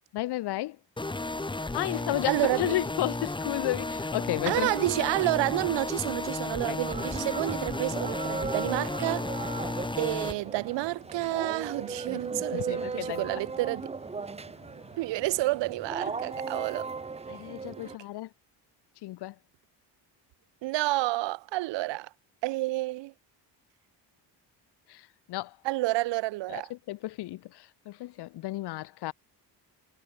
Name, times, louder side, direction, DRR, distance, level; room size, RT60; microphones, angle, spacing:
voice 1, 0.1-0.8 1.6-4.9 6.7-6.8 12.5-13.4 17.3-18.3 19.0-19.3 24.9-25.6 26.5-29.1, left 16 dB, 65° left, 0.7 m, -33 dB
sound 1, 1.0-10.3, left 2 dB, 10° left, 1.7 m, -33 dB
sound 2, 2.3-16.8, left 14 dB, 80° left, 4.2 m, -58 dB
voice 2, 2.3-2.7 4.5-9.5 10.0-13.9 15.0-16.9 20.6-22.1 22.4-23.1 25.6-26.7, right 19 dB, 80° right, 0.7 m, -29 dB
sound 3, 6.8-18.0, right 4 dB, 15° right, 0.6 m, -37 dB
cardioid pair, 105°, 43 cm